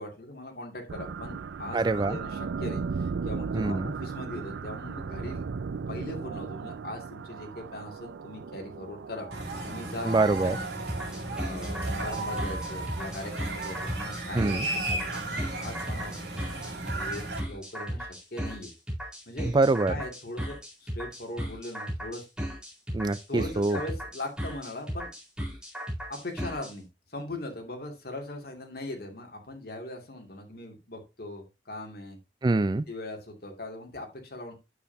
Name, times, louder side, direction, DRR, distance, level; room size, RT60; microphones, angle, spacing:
voice 1, 0.0-5.4 5.9-9.3 9.7-10.5 11.4-18.7 19.3-19.5 19.9-22.3 23.3-25.1 26.1-26.8 27.1-32.2 32.9-34.5, left 1 dB, 55° left, 2.4 m, -40 dB
sound 1, 0.9-12.9, right 5 dB, 90° right, 0.5 m, -37 dB
voice 2, 1.7-2.2 3.5-3.9 10.0-10.6 14.3-14.7 19.5-19.9 22.9-23.8 32.4-32.9, right 3 dB, 25° right, 0.3 m, -25 dB
sound 2, 9.3-17.4, right 2 dB, 70° right, 2.9 m, -34 dB
sound 3, 10.9-26.7, equal, 5° right, 4.1 m, -35 dB
9.3 x 7.2 x 2.8 m
head